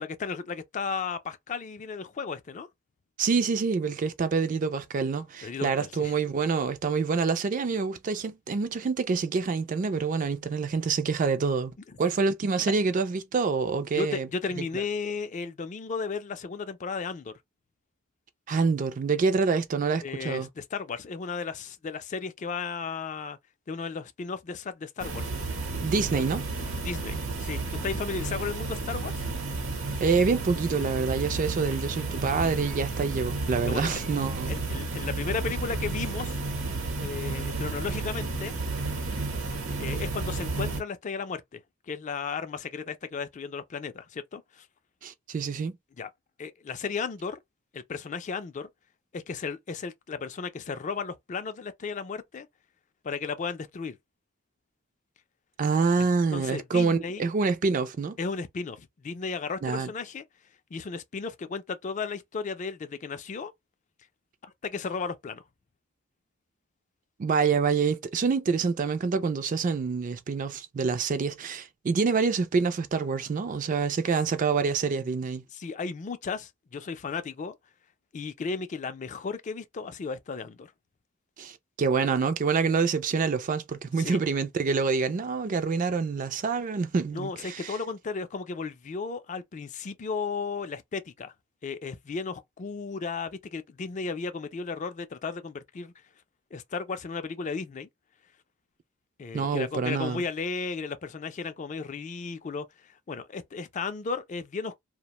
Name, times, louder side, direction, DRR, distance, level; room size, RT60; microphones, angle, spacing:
voice 1, 0.0-2.7 5.4-6.1 13.9-17.3 20.0-23.4 23.7-25.7 26.8-29.2 33.6-34.1 34.4-36.4 37.0-38.5 39.8-41.6 41.9-44.7 46.0-46.1 46.4-47.4 47.7-48.7 49.1-52.5 53.0-54.0 56.0-57.3 58.2-60.2 60.7-63.5 64.4-65.4 75.5-77.6 78.1-80.7 84.0-84.2 87.1-91.3 91.6-95.9 96.5-97.9 99.2-104.8, left 5 dB, 35° left, 0.4 m, -34 dB
voice 2, 3.2-14.3 18.5-20.5 25.8-26.4 30.0-34.5 45.0-45.8 55.6-58.2 59.6-59.9 67.2-75.4 81.4-87.7 99.3-100.2, right 5 dB, 40° right, 0.3 m, -26 dB
sound 1, 25.0-40.8, right 3 dB, 75° right, 0.9 m, -32 dB
2.4 x 2.1 x 2.8 m
head